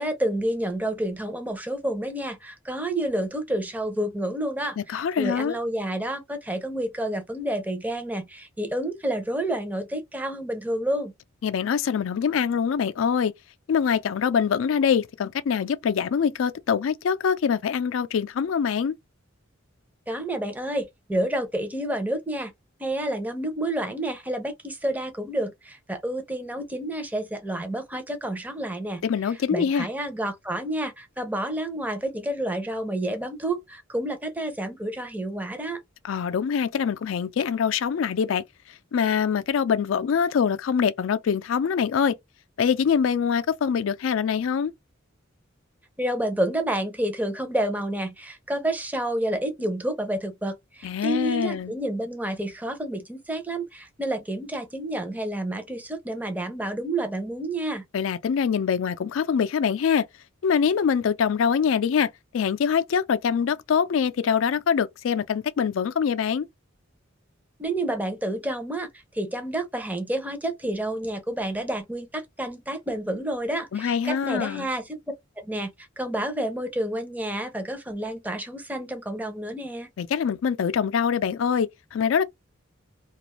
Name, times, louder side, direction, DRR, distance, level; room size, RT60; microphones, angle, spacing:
voice 1, 0.0-11.1 20.1-22.5 22.8-29.0 29.5-35.8 46.0-57.8 67.6-68.9 69.1-75.0 75.4-79.9, right 1 dB, 10° right, 0.5 m, -29 dB
voice 2, 4.9-5.6 11.4-13.3 13.7-18.9 29.0-29.9 36.0-38.4 38.9-42.1 42.6-44.7 50.8-51.7 57.9-60.1 60.4-66.5 73.7-74.7 80.0-82.2, left 7 dB, 75° left, 0.4 m, -24 dB
2.4 x 2.3 x 2.9 m
head